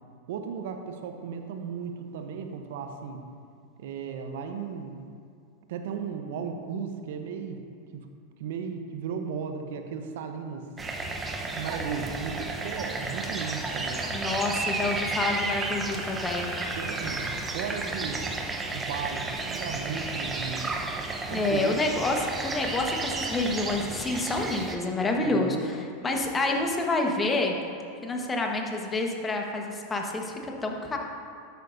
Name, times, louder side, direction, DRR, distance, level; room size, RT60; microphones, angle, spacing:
voice 1, 0.3-3.2 3.8-5.0 5.7-7.6 7.9-8.1 8.4-10.7 11.4-14.2 16.8-18.2 18.7-20.7 21.3-21.8 25.2-25.6, right 6 dB, 65° right, 6 dB, 0.9 m, -35 dB
sound 1, 10.8-24.8, right 3 dB, 20° right, 1.0 m, -32 dB
voice 2, 14.1-16.5 21.3-22.2 22.4-27.6 28.0-31.0, left 2 dB, 20° left, 1 dB, 1.4 m, -28 dB
12.5 x 9.2 x 2.7 m, 2.4 s
hypercardioid pair, 90°, 0 cm